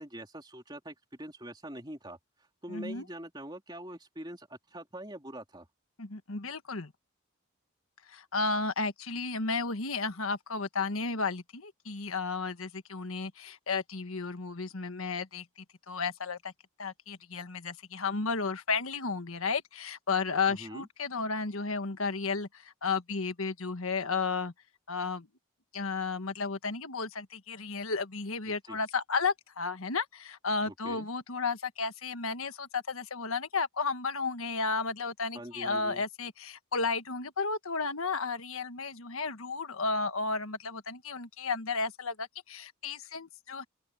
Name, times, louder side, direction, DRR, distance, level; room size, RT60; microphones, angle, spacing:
voice 1, 0.0-2.2 2.6-5.7 20.5-20.9 28.4-28.8 30.6-31.1 35.3-36.0, right 1 dB, 20° right, 3.4 m, -44 dB
voice 2, 2.7-3.0 6.0-6.9 8.1-15.4 15.9-16.5 16.8-24.5 24.9-25.3 25.7-43.6, left 4 dB, 75° left, 1.5 m, -33 dB
open air
head